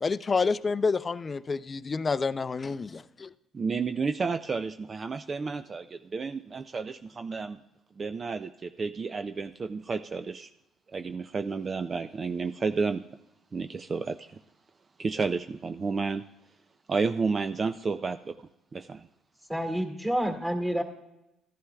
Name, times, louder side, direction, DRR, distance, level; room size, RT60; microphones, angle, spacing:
voice 1, 0.0-3.3, left 4 dB, 30° left, 15 dB, 0.4 m, -28 dB
voice 2, 3.5-7.6 8.0-10.5 10.9-13.0 13.5-14.3 15.0-16.2 16.9-19.1, right 4 dB, 35° right, 9 dB, 0.4 m, -31 dB
voice 3, 19.5-20.8, equal, 10° right, 3 dB, 1.9 m, -28 dB
14.5 x 11.0 x 2.3 m, 0.89 s
cardioid pair, 85°, 0 cm